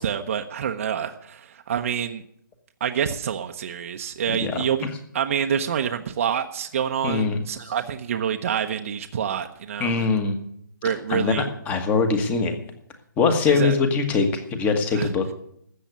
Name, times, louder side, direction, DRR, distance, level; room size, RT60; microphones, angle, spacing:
voice 1, 0.0-2.2 2.8-4.9 5.1-10.1 10.8-11.4 13.5-13.7 14.9-15.1, right 8 dB, 40° right, 5 dB, 0.9 m, -27 dB
voice 2, 4.3-4.6 7.0-7.4 9.8-10.4 11.1-12.6 13.2-15.2, left 4 dB, 15° left, 7 dB, 1.5 m, -22 dB
13.5 x 8.2 x 9.4 m, 0.70 s
hypercardioid pair, 160°, 11 cm